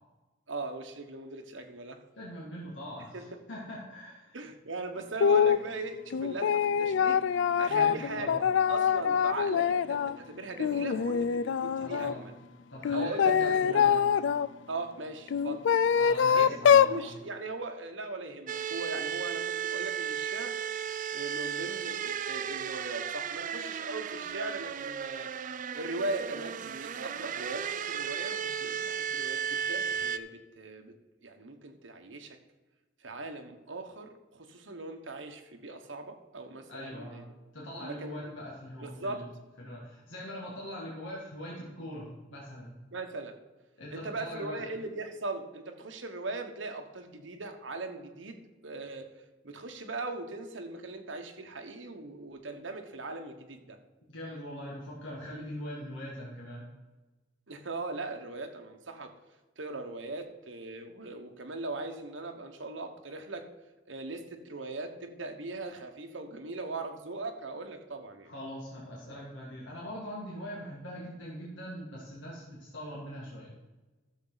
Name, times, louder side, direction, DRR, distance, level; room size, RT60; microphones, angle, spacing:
voice 1, 0.5-2.0 3.1-3.3 4.3-7.2 7.6-12.3 12.9-13.9 14.7-15.7 16.3-20.6 21.1-25.3 25.7-31.0 31.2-32.4 33.0-37.3 37.8-38.3 38.8-39.3 42.9-43.4 43.9-49.1 49.4-53.8 57.5-59.1 59.6-63.5 63.9-68.3, right 2 dB, 85° right, 4 dB, 1.3 m, -39 dB
voice 2, 2.2-4.5 7.7-8.4 11.7-12.3 12.7-14.0 16.0-17.1 36.7-37.2 37.5-39.2 39.6-42.7 43.8-44.6 54.1-56.7 68.3-73.5, equal, 90° left, -5 dB, 2.3 m, -42 dB
sound 1, 5.2-5.6 6.1-10.2 10.6-12.1 12.8-14.5 15.3-17.0, left 7 dB, 70° left, 0.3 m, -25 dB
sound 2, 18.5-30.2, right 8 dB, 45° right, 0.4 m, -35 dB
13.0 x 7.3 x 4.1 m, 1.2 s
head